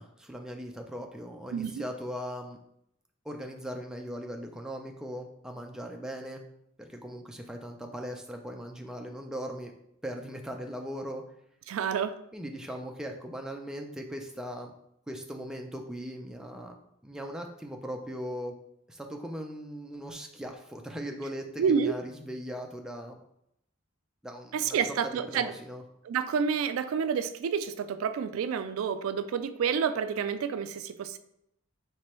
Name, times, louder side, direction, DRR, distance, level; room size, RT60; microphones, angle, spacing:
voice 1, 0.0-2.6 3.2-6.4 6.8-9.7 10.0-11.2 12.3-14.7 15.1-16.7 17.0-18.5 18.9-23.2 24.2-25.8, equal, 5° right, 2 dB, 0.4 m, -39 dB
voice 2, 11.7-12.1 21.6-21.9 24.5-25.5 26.1-31.2, right 6 dB, 80° right, 11 dB, 0.3 m, -29 dB
4.6 x 3.2 x 3.0 m, 0.76 s
head